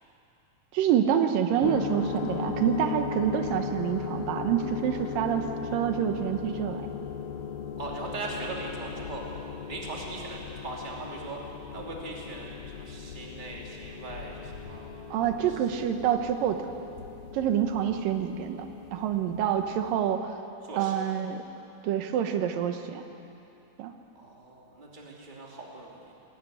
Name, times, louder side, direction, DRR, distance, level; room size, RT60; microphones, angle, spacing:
voice 1, 0.7-6.9 15.1-16.6 17.3-18.6 18.9-20.3 20.8-21.4 21.8-23.0 23.8-23.9, right 9 dB, 90° right, 6 dB, 2.8 m, -27 dB
sound 1, 1.6-20.0, left 7 dB, 75° left, 1.3 m, -38 dB
voice 2, 7.8-9.4 9.7-11.4 11.7-14.9 15.5-15.6 20.6-21.0 24.1-26.1, right 2 dB, 15° right, -2 dB, 2.3 m, -40 dB
20.0 x 13.5 x 9.7 m, 2.8 s
omnidirectional pair, 3.9 m